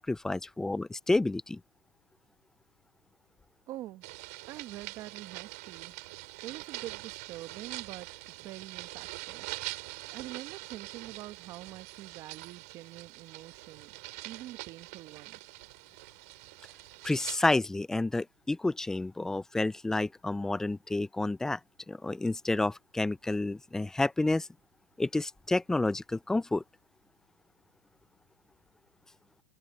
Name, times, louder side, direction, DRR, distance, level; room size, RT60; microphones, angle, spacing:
voice 1, 0.0-1.6 17.0-21.6 21.9-24.5 25.0-26.6, left 2 dB, 5° left, 0.5 m, -30 dB
voice 2, 3.7-4.1 4.5-5.9 6.4-8.1 8.4-9.5 10.1-13.9 14.2-15.5, right 15 dB, 35° right, 1.4 m, -45 dB
sound 1, 4.0-17.4, right 25 dB, 60° right, 5.4 m, -44 dB
supercardioid pair, 145°, 9 cm